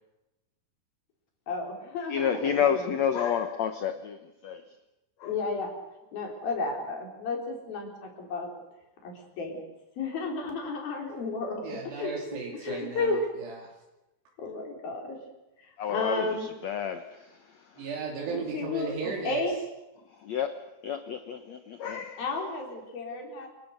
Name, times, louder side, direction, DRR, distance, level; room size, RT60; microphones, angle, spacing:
voice 1, 1.5-2.9 5.2-5.7 6.1-8.5 9.0-9.6 10.0-11.6 12.0-12.1 12.6-13.2 14.4-15.2 15.6-16.5 18.3-18.9 19.2-19.6 22.2-23.5, left 3 dB, 60° left, 6.0 m, -32 dB
voice 2, 2.1-4.6 5.2-5.3 15.8-17.4 17.7-17.8 20.2-20.5 20.8-22.2, left 8 dB, 80° left, 1.5 m, -30 dB
voice 3, 11.6-13.7 17.8-19.4, right 4 dB, 80° right, 4.9 m, -35 dB
29.0 x 19.5 x 6.7 m
omnidirectional pair, 4.8 m